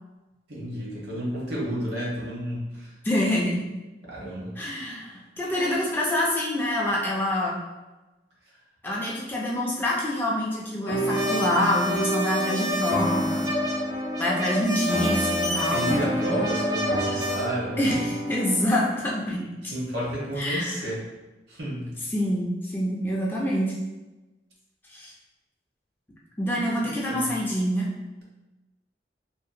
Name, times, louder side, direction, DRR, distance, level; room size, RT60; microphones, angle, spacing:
voice 1, 0.5-2.9 4.1-4.5 15.7-17.9 19.6-21.0 21.5-22.0 26.8-27.3, right 1 dB, 65° right, -5 dB, 0.9 m, -31 dB
voice 2, 3.0-3.6 4.6-7.6 8.8-13.4 14.2-16.4 17.8-19.7 20.4-20.7 22.1-23.7 24.9-25.1 26.4-27.9, left 1 dB, 10° left, -5 dB, 0.3 m, -26 dB
sound 1, 10.9-18.7, equal, 85° left, 0.5 m, -30 dB
sound 2, 11.1-17.5, left 1 dB, 90° right, 1.2 m, -29 dB
2.7 x 2.1 x 2.5 m, 1.1 s
head